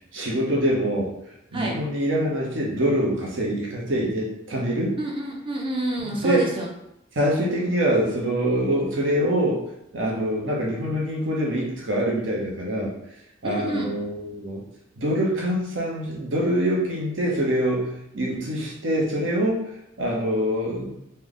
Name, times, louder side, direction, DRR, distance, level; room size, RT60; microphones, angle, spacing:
voice 1, 0.1-1.1 1.5-5.0 6.1-6.4 7.1-9.6 9.9-12.9 13.4-14.6 15.0-19.7 20.0-21.0, equal, 70° right, -2 dB, 0.9 m, -24 dB
voice 2, 5.0-6.7 13.4-13.9, right 1 dB, 25° right, 0 dB, 0.6 m, -28 dB
3.2 x 2.2 x 3.9 m, 0.80 s
head